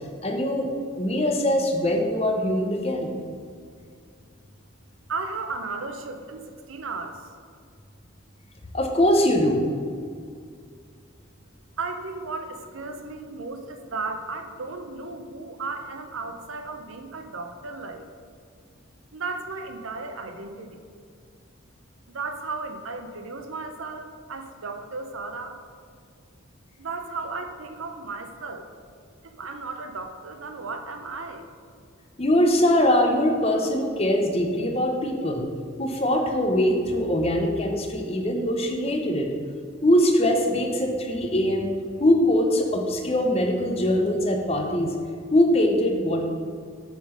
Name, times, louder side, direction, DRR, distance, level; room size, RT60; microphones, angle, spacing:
voice 1, 0.2-3.1 8.7-9.7 32.2-35.5 35.8-39.3 39.8-41.7 42.0-45.0 45.3-46.2, left 1 dB, 30° left, 3 dB, 0.7 m, -22 dB
voice 2, 5.1-7.3 11.8-18.0 19.1-20.8 22.1-25.6 26.8-28.7 29.2-31.4, right 3 dB, 75° right, 6 dB, 0.6 m, -35 dB
7.3 x 3.8 x 5.2 m, 2.2 s
head